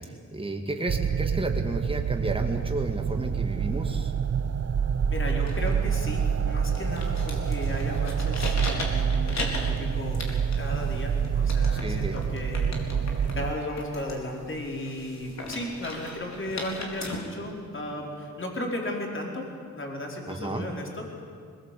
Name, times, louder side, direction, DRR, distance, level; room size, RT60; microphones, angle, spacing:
voice 1, 0.3-4.1 11.7-12.2 20.3-20.7, right 2 dB, 20° right, 3 dB, 2.3 m, -32 dB
sound 1, 0.9-13.5, right 7 dB, 55° right, 0.8 m, -27 dB
voice 2, 5.1-10.2 10.6-12.7 13.3-19.5 19.7-21.0, left 1 dB, 40° left, 0 dB, 4.7 m, -35 dB
sound 2, 5.3-17.1, left 2 dB, 60° left, 4.0 m, -39 dB
22.0 x 19.5 x 8.6 m, 2.2 s
cardioid pair, 85°, 30 cm